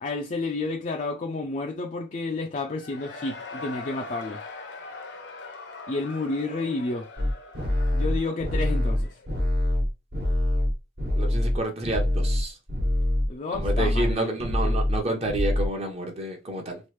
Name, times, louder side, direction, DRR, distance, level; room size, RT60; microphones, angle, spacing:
voice 1, 0.0-4.4 5.9-7.1 7.9-9.2 13.3-14.3 14.6-14.8, left 3 dB, 40° left, 0.4 m, -30 dB
Cheering / Crowd, 2.6-9.3, left 3 dB, 70° left, 0.7 m, -41 dB
sound 1, 7.2-12.4 12.7-13.3 13.5-14.1 14.4-15.0 15.3-15.7, left 1 dB, 60° right, 1.2 m, -24 dB
voice 2, 11.2-12.6 13.5-16.8, right 1 dB, 35° right, 0.7 m, -29 dB
3.1 x 2.4 x 3.1 m
head